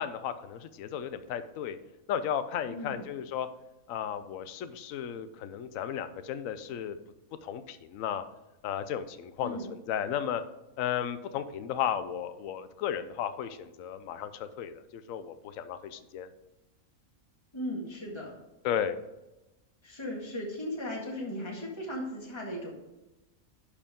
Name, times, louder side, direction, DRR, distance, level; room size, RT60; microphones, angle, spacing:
voice 1, 0.0-1.8 2.1-3.5 3.9-7.0 7.4-8.2 8.6-9.6 9.9-10.4 10.8-16.3 18.6-19.0, left 9 dB, 70° left, 11 dB, 1.0 m, -34 dB
voice 2, 2.7-3.1 9.4-9.7 17.5-18.3 19.8-22.7, left 1 dB, 20° left, -2 dB, 1.9 m, -37 dB
11.5 x 4.9 x 3.7 m, 0.98 s
omnidirectional pair, 1.5 m